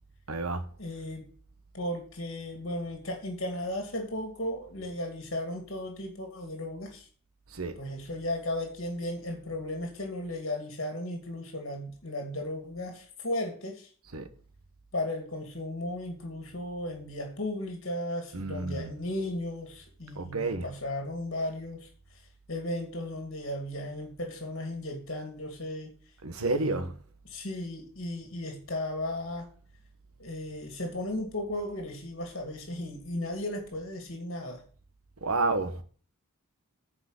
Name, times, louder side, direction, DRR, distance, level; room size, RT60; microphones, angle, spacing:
voice 1, 0.3-0.6 7.5-7.8 14.1-14.3 18.3-18.9 20.1-20.7 26.2-26.9 35.2-35.8, right 3 dB, 85° right, 1.3 m, -30 dB
voice 2, 0.8-1.3 1.7-7.1 7.8-13.9 14.9-21.9 22.5-25.9 26.4-26.9 27.3-29.5 30.2-34.6, left 1 dB, 55° left, 2.3 m, -35 dB
9.9 x 4.9 x 8.1 m
head